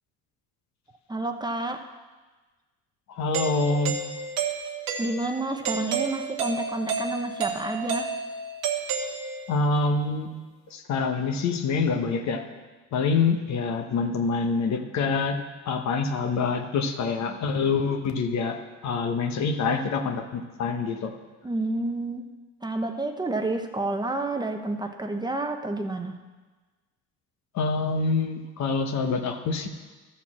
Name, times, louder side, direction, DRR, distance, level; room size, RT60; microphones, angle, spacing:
voice 1, 1.1-1.8 5.0-8.1 21.4-22.3 22.6-26.2, right 2 dB, 15° right, 5 dB, 0.8 m, -29 dB
voice 2, 3.2-3.9 9.5-10.3 10.7-12.4 12.9-15.4 15.7-21.1 27.5-29.7, left 4 dB, 60° left, 5 dB, 1.2 m, -26 dB
Doorbell, 3.3-9.7, right 5 dB, 85° right, 1.3 m, -31 dB
12.5 x 4.4 x 7.3 m, 1.3 s
cardioid pair, 100°, 32 cm